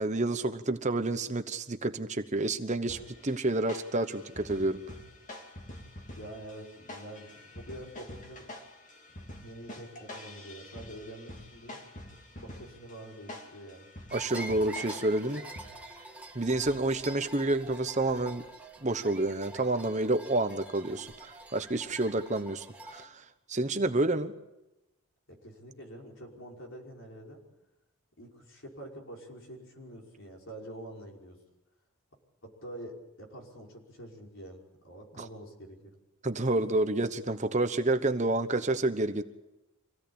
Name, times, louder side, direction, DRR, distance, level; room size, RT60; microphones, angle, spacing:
voice 1, 0.0-4.8 14.1-15.4 16.3-18.4 18.8-24.3 35.2-35.3 36.2-39.2, right 2 dB, 30° right, 9 dB, 1.0 m, -29 dB
sound 1, 2.9-16.0, left 1 dB, 35° left, 2.6 m, -47 dB
voice 2, 6.2-8.5 9.1-11.8 12.4-13.9 25.3-27.4 28.2-31.4 32.4-35.9, right 1 dB, 60° left, 0 dB, 5.4 m, -46 dB
sound 2, 14.1-23.0, right 2 dB, 5° right, 1.7 m, -46 dB
25.5 x 17.0 x 8.7 m, 0.97 s
head